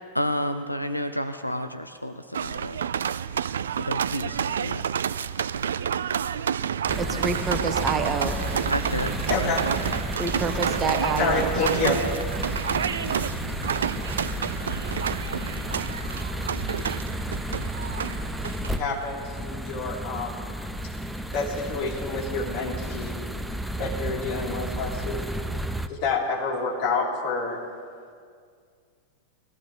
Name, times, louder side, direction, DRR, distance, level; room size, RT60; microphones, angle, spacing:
voice 1, 0.1-2.8 3.8-4.8 8.7-9.1 9.4-9.7, equal, 90° left, 9 dB, 0.6 m, -30 dB
sound 1, 2.3-19.0, right 8 dB, 65° right, 0.4 m, -29 dB
sound 2, 6.9-25.9, equal, 5° right, 0.6 m, -32 dB
voice 2, 7.0-8.3 10.2-11.5, right 4 dB, 25° right, 6 dB, 1.2 m, -27 dB
voice 3, 9.3-9.6 10.8-10.9 11.2-12.1 18.8-20.5 21.3-23.2 23.8-25.2 25.9-27.6, left 3 dB, 45° left, -4 dB, 3.8 m, -28 dB
22.5 x 15.0 x 3.4 m, 2.1 s
figure-of-eight pair, 90°, 0 cm